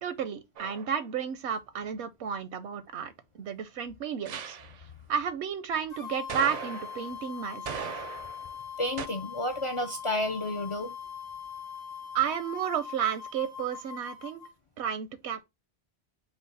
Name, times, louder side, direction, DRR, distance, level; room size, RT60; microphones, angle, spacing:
voice 1, 0.0-4.6 5.1-8.1 12.1-14.4 14.8-15.4, right 8 dB, 80° right, 0.9 m, -32 dB
sound 1, 0.6-1.0 4.3-4.8 6.3-7.1 7.7-8.5 9.0-9.1, right 7 dB, 55° right, 0.5 m, -38 dB
sound 2, 5.9-14.5, left 7 dB, 75° left, 1.7 m, -42 dB
voice 2, 8.8-10.9, left 1 dB, 50° left, 0.4 m, -31 dB
5.7 x 2.1 x 3.9 m
omnidirectional pair, 1.1 m